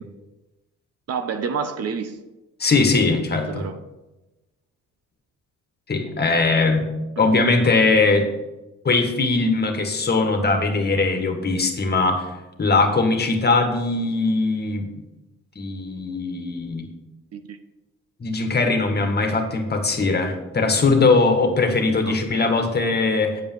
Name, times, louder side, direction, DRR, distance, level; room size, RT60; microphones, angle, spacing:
voice 1, 1.1-2.2 3.5-3.8 7.2-7.3 7.6-7.7 17.3-17.6 22.0-22.5, right 6 dB, 55° right, 9 dB, 0.8 m, -29 dB
voice 2, 2.6-3.6 5.9-6.8 7.2-8.3 8.9-12.3 12.6-14.9 15.6-16.9 18.2-23.4, left 3 dB, 35° left, 5 dB, 1.7 m, -20 dB
8.7 x 5.4 x 7.2 m, 1.1 s
cardioid pair, 90°, 30 cm